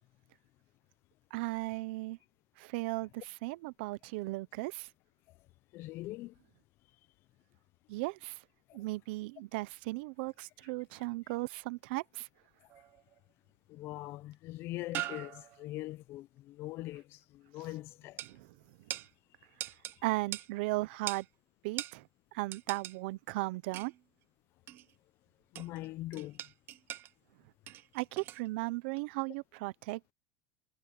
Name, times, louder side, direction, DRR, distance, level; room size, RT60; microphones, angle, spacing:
voice 1, 1.3-2.2 2.6-4.9 7.9-8.4 8.7-12.3 18.2-18.5 20.0-21.3 21.6-22.1 22.3-23.9 27.9-30.1, right 22 dB, 70° right, 0.7 m, -36 dB
voice 2, 5.7-6.3 13.7-18.2 25.5-26.4, left 17 dB, 45° left, 0.6 m, -42 dB
sound 1, 12.7-13.2 14.3-14.4 14.9-15.8 18.2-18.3 18.9-19.1 19.6-20.0 20.3-20.5 21.1-21.3 21.8-22.0 22.5-23.0 23.7-24.0 24.7-24.9 25.5-25.9 26.1-27.1 27.7-28.5 28.9-29.0, right 14 dB, 40° right, 0.7 m, -41 dB
cardioid pair, 160°, 6 cm